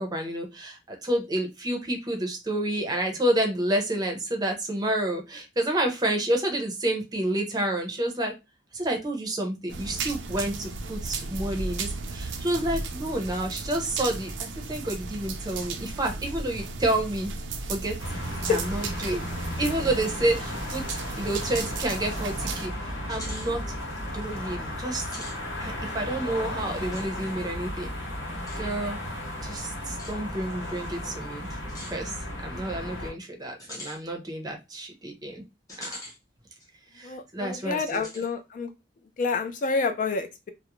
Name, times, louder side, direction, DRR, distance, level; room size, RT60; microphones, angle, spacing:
voice 1, 0.0-8.3 8.7-17.3 17.7-18.0 18.5-19.3 19.6-20.8 21.2-23.6 24.0-25.2 25.6-27.9 28.6-29.1 29.4-31.5 31.9-32.2 32.4-35.4 35.8-36.0 36.9-38.1, right 1 dB, 20° right, 3 dB, 0.6 m, -29 dB
sound 1, 9.7-22.7, right 3 dB, 75° right, 0.4 m, -35 dB
sound 2, 18.0-33.1, left 1 dB, 75° left, 1.0 m, -34 dB
sound 3, 21.3-21.8 22.2-22.3 23.1-23.5 24.9-25.4 26.9-27.1 28.5-28.6 29.9-30.2 31.7-32.0 33.6-34.0 35.7-36.2 36.6-36.7 37.9-38.3, left 1 dB, 20° left, 0.7 m, -42 dB
voice 2, 37.0-38.7 39.2-40.5, left 4 dB, 45° left, 8 dB, 0.3 m, -28 dB
2.3 x 2.0 x 2.9 m, 0.23 s
head